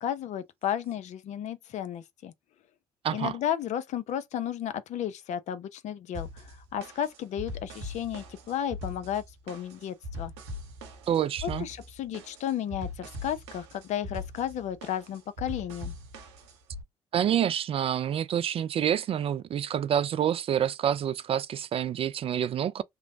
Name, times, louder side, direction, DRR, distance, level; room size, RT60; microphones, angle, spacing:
voice 1, 0.0-2.3 3.1-10.3 11.4-15.9, left 10 dB, 55° left, 0.5 m, -33 dB
voice 2, 3.0-3.4 11.1-11.7 17.1-22.8, right 9 dB, 40° right, 0.3 m, -27 dB
sound 1, 6.1-16.8, left 1 dB, 80° right, 0.8 m, -41 dB
3.0 x 2.0 x 2.6 m
hypercardioid pair, 55°, 14 cm